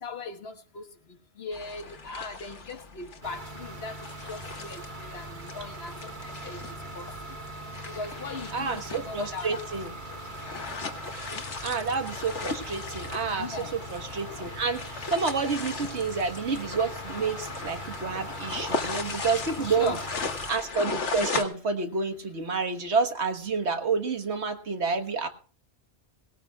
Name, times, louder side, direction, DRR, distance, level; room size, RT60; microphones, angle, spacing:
voice 1, 0.0-0.8 1.4-4.0 4.3-6.6 6.9-7.1 7.9-9.7 13.4-13.7 19.6-20.0, left 3 dB, 60° left, 1.5 m, -38 dB
sound 1, 1.5-21.4, left 4 dB, 80° left, 1.8 m, -37 dB
sound 2, 3.2-20.5, right 1 dB, 45° right, 1.7 m, -42 dB
voice 2, 8.5-9.9 11.6-19.9 20.5-25.3, right 4 dB, 70° right, 1.7 m, -29 dB
18.5 x 18.0 x 2.3 m
omnidirectional pair, 1.2 m